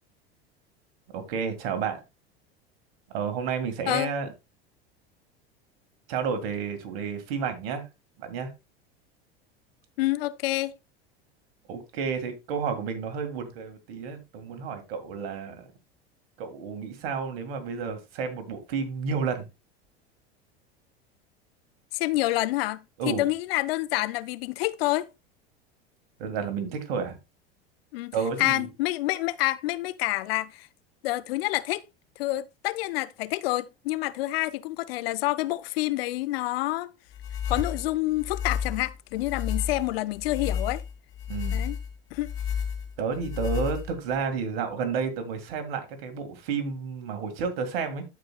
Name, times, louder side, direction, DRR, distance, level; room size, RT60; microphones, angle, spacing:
voice 1, 1.1-2.0 3.1-4.3 6.1-7.8 8.2-8.5 11.7-15.7 16.4-19.5 23.0-23.3 26.2-27.2 28.1-28.7 41.3-41.7 43.0-48.0, right 6 dB, 65° right, 2.1 m, -31 dB
voice 2, 10.0-10.7 21.9-25.1 27.9-30.7 31.0-31.8 32.2-36.9 37.5-40.8 41.5-41.8 42.1-42.3, left 17 dB, 70° left, 0.6 m, -28 dB
sound 1, 37.1-44.2, left 7 dB, 45° left, 2.5 m, -32 dB
14.0 x 4.9 x 2.3 m
hypercardioid pair, 85°, 31 cm